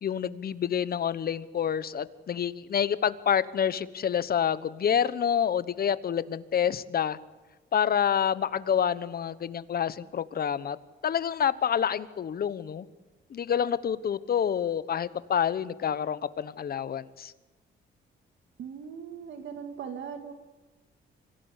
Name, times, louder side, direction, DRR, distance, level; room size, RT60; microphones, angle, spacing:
voice 1, 0.0-7.2 7.7-10.8 11.0-12.9 13.3-17.3, left 8 dB, 50° left, 15 dB, 1.2 m, -28 dB
voice 2, 18.6-20.3, right 7 dB, 65° right, 6 dB, 2.1 m, -39 dB
25.5 x 17.0 x 8.3 m, 1.2 s
cardioid pair, 90°, 20 cm